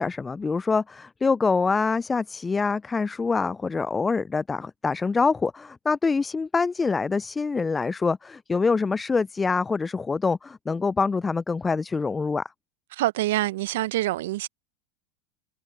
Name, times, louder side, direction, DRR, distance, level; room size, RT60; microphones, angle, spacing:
voice 1, 0.0-12.5, left 4 dB, 15° left, 0.4 m, -25 dB
voice 2, 12.9-14.5, right 16 dB, 70° right, 0.8 m, -26 dB
hypercardioid pair, 85°, 0 cm